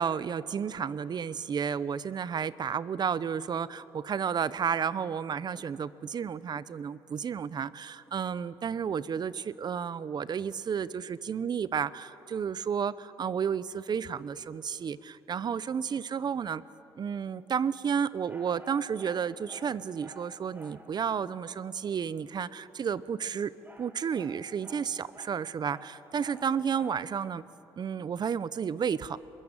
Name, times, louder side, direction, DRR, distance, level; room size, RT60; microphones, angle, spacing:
voice 1, 0.0-16.6 17.0-23.5 23.8-27.4 27.8-29.2, right 7 dB, 50° right, 17 dB, 0.9 m, -32 dB
sound 1, 18.3-20.9 23.0-27.1, right 1 dB, 20° right, 3.2 m, -52 dB
23.0 x 21.5 x 9.0 m, 2.9 s
supercardioid pair, 70°, 9 cm